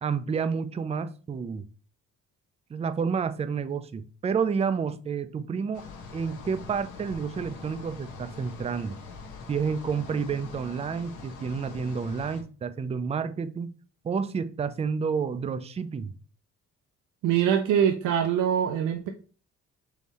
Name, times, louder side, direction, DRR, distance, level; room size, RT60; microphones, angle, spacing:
voice 1, 0.0-1.6 2.7-5.9 6.1-9.0 9.5-13.8 14.0-16.1, right 6 dB, 20° right, 0.4 m, -30 dB
sound 1, 5.7-12.4, left 4 dB, 85° left, 1.1 m, -43 dB
voice 2, 17.2-19.1, right 9 dB, 85° right, 0.5 m, -23 dB
3.8 x 3.1 x 4.1 m
cardioid pair, 90°, 30 cm